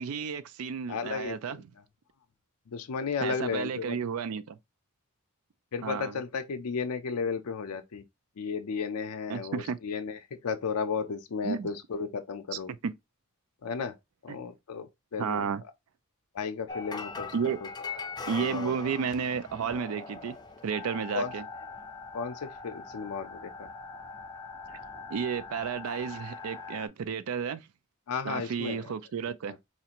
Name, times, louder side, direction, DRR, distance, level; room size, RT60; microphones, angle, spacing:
voice 1, 0.0-1.6 3.2-4.6 5.8-6.2 9.3-9.8 11.4-11.7 12.8-12.9 14.3-14.4 15.2-15.6 17.3-17.6 18.3-20.4 20.6-21.4 25.1-27.7 28.2-29.6, right 6 dB, 70° right, 0.4 m, -32 dB
voice 2, 0.9-1.6 2.7-4.0 5.7-8.0 8.4-12.7 13.6-14.0 14.2-15.5 16.3-18.0 18.4-18.7 21.1-21.3 22.1-23.7 28.1-28.9 29.4-29.6, left 5 dB, 80° left, 0.5 m, -34 dB
sound 1, 16.7-26.9, left 4 dB, 20° left, 0.5 m, -41 dB
4.2 x 2.5 x 2.8 m
head